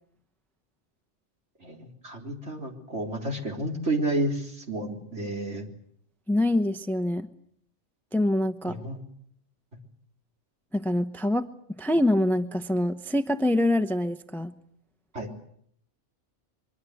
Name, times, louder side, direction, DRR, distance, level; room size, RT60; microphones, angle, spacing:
voice 1, 1.6-5.7 8.7-9.0 15.1-15.3, right 1 dB, 75° right, 1 dB, 4.0 m, -31 dB
voice 2, 6.3-7.3 8.1-8.8 10.7-11.5 11.8-14.5, left 1 dB, ahead, 9 dB, 0.9 m, -25 dB
23.5 x 23.0 x 7.9 m, 0.68 s
omnidirectional pair, 1.2 m